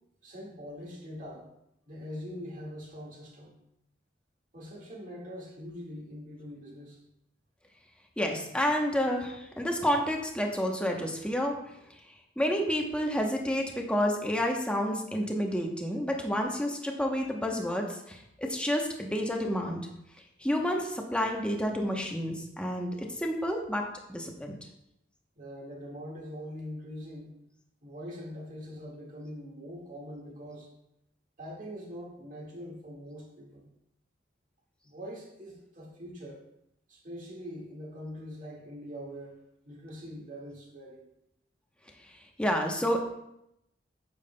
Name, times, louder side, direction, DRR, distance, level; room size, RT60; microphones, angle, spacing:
voice 1, 0.2-1.5 1.9-3.6 4.5-7.0 25.4-27.3 27.8-30.7 31.4-33.7 34.8-36.4 36.9-39.4 39.7-41.0, equal, 45° right, -2 dB, 1.9 m, -43 dB
voice 2, 8.2-11.5 12.4-19.8 20.4-24.6 42.4-43.0, equal, 5° left, 1 dB, 0.9 m, -29 dB
9.0 x 7.0 x 2.2 m, 0.80 s
head